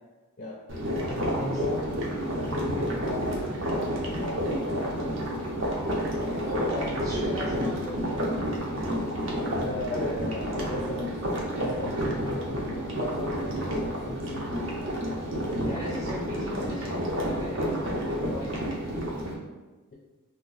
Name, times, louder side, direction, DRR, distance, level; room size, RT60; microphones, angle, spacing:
sound 1, 0.7-19.3, equal, 60° right, 0.6 m, -30 dB
voice 1, 1.0-2.0 2.4-6.7 7.6-7.9 9.6-15.0, left 2 dB, 35° left, -3 dB, 0.4 m, -38 dB
voice 2, 6.4-9.3 15.6-18.6, left 1 dB, 15° right, -7 dB, 0.6 m, -38 dB
2.8 x 2.1 x 3.8 m, 1.2 s
head